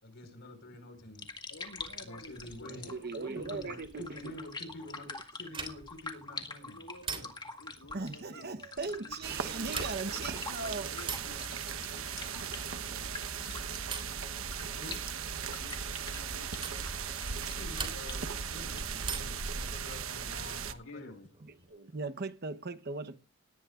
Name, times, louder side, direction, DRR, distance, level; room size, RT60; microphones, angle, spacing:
voice 1, 0.0-1.2 2.0-2.8 3.3-6.8 7.1-7.3 14.8-15.0 17.4-21.1, left 1 dB, 60° left, 5.0 m, -47 dB
sound 1, 1.0-20.1, left 3 dB, 20° left, 2.0 m, -47 dB
voice 2, 1.5-3.7 6.6-7.3 7.6-8.6 9.0-13.5 15.5-16.9 20.5-21.3, left 2 dB, 90° left, 2.2 m, -53 dB
voice 3, 2.7-4.2 7.9-10.9 21.7-23.2, right 3 dB, 50° right, 1.0 m, -38 dB
sound 2, 5.5-6.0 7.0-7.6 9.6-10.2 11.0-11.4 12.7-13.0 13.9-14.2 15.5-15.8 16.6-16.8 17.7-18.3 19.0-19.5 21.0-21.7, right 5 dB, 25° right, 3.7 m, -41 dB
sound 3, 9.2-20.7, right 6 dB, 80° right, 1.2 m, -38 dB
18.5 x 17.5 x 2.5 m
head